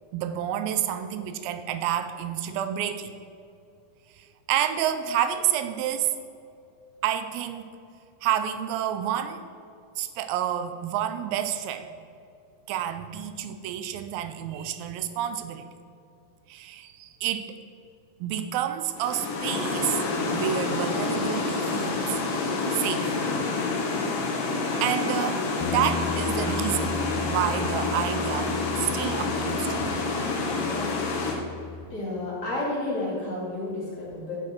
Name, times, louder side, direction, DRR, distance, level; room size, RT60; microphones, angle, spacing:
voice 1, 0.1-3.1 4.2-6.1 7.0-7.8 8.2-9.5 10.0-11.9 12.7-15.7 16.5-17.5 18.2-20.0 20.3-22.2 22.7-23.1 24.8-27.0 27.3-30.0, right 10 dB, 80° right, 9 dB, 2.2 m, -29 dB
sound 1, 19.0-31.3, left 3 dB, 65° left, 2.7 m, -28 dB
Bass guitar, 25.6-31.9, left 4 dB, 85° left, 2.6 m, -36 dB
voice 2, 31.8-34.4, left 2 dB, 30° left, -6 dB, 2.4 m, -31 dB
10.5 x 6.1 x 4.5 m, 2.5 s
omnidirectional pair, 4.6 m